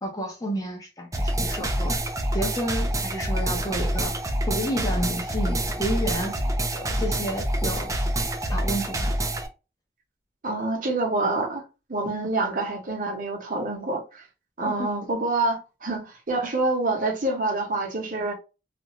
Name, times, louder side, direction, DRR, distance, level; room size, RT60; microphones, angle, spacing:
voice 1, 0.0-2.0 2.3-4.2 4.5-6.4 6.7-8.0 8.5-9.1 14.7-14.9, equal, 20° left, 0.7 m, -30 dB
sound 1, 1.1-9.5, right 1 dB, 20° right, 0.4 m, -26 dB
voice 2, 10.4-14.2 14.6-18.3, right 2 dB, 50° right, 0.9 m, -27 dB
2.5 x 2.3 x 3.0 m
head